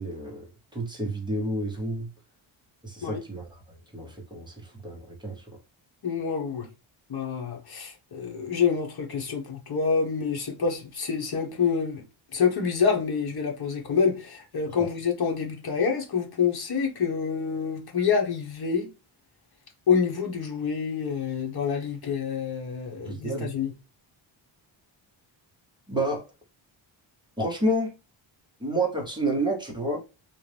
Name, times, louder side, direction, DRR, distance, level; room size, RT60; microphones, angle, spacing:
voice 1, 0.0-2.1 2.8-5.6 14.8-14.9 23.0-23.5 25.9-26.2 27.4-27.9 28.6-30.0, right 1 dB, 10° right, 1.1 m, -30 dB
voice 2, 6.0-6.7 7.1-12.0 12.3-18.9 19.9-23.7, left 6 dB, 50° left, 1.2 m, -27 dB
3.8 x 2.6 x 3.4 m
wide cardioid pair, 125°, 48 cm